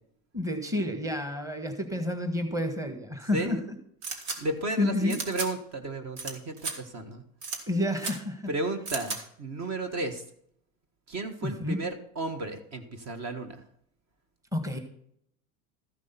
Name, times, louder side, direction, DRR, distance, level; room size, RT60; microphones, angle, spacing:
voice 1, 0.3-3.8 4.8-5.2 7.7-8.5 11.4-11.8 14.5-14.8, left 1 dB, 10° right, 6 dB, 1.6 m, -29 dB
sound 1, 4.0-4.4 5.1-5.5 6.2-6.3 6.6-6.7 7.4-7.6 8.0-8.1 8.9-9.2, right 4 dB, 70° right, 2.8 m, -33 dB
voice 2, 4.4-7.2 8.5-10.2 11.1-13.6, right 2 dB, 40° right, 8 dB, 1.6 m, -33 dB
14.0 x 6.1 x 5.9 m, 0.68 s
supercardioid pair, 115°, 42 cm